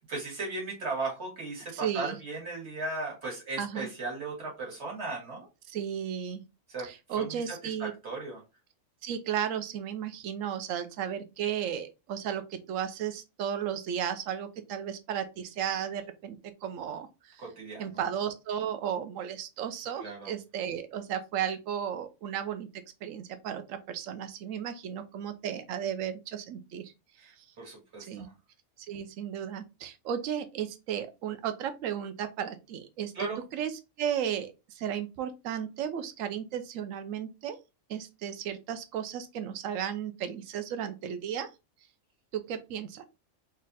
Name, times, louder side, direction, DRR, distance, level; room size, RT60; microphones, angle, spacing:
voice 1, 0.1-5.5 6.7-6.9 7.2-7.4 7.8-8.4 17.4-18.0 20.0-20.3 27.2-27.3 27.6-28.3 33.1-33.4, right 3 dB, 55° right, -2 dB, 2.2 m, -36 dB
voice 2, 1.7-2.2 3.6-3.9 5.7-6.4 6.8-7.9 9.0-17.4 17.8-22.7 23.0-26.9 27.2-27.4 28.1-28.3 28.8-33.1 33.5-33.7 34.0-37.6 37.9-41.5 42.3-43.0, right 9 dB, 75° right, 9 dB, 1.0 m, -34 dB
4.1 x 2.4 x 4.0 m, 0.26 s
omnidirectional pair, 1.4 m